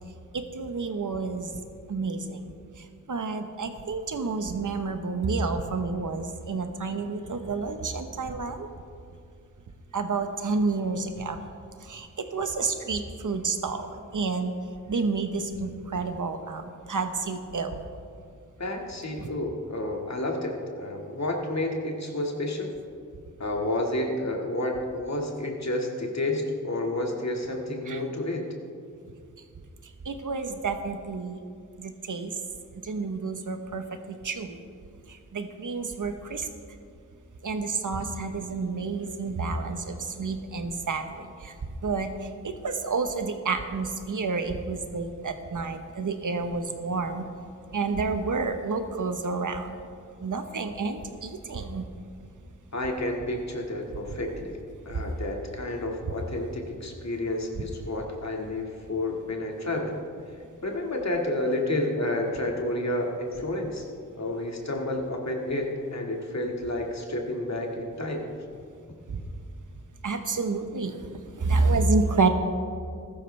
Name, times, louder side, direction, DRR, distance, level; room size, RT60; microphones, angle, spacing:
voice 1, 0.3-1.5 1.9-2.5 2.8-8.7 9.9-11.4 11.8-14.5 14.9-17.8 27.9-28.0 30.0-31.4 31.8-32.3 32.7-34.6 35.1-36.5 37.4-41.5 41.8-47.3 47.7-49.8 50.2-51.8 69.1-69.2 70.0-71.0 71.3-72.3, right 4 dB, 65° right, 7 dB, 1.1 m, -29 dB
voice 2, 18.6-22.7 23.4-28.5 52.7-54.6 54.9-60.0 60.6-63.8 64.2-68.2, left 1 dB, 55° left, 1 dB, 2.1 m, -30 dB
14.5 x 12.0 x 3.4 m, 2.4 s
cardioid pair, 45°, 33 cm